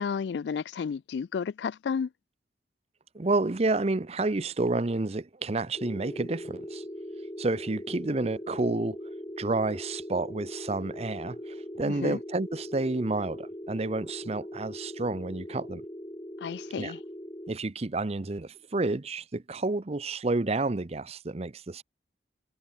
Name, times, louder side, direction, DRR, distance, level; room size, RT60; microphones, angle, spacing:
voice 1, 0.0-2.1 11.9-12.2 16.4-17.0, left 6 dB, 70° left, 0.3 m, -32 dB
voice 2, 3.1-6.8 7.4-9.0 9.4-15.9 16.8-16.9 17.5-21.8, right 2 dB, 35° right, 0.6 m, -30 dB
sound 1, 5.8-17.5, equal, 20° left, 3.2 m, -40 dB
head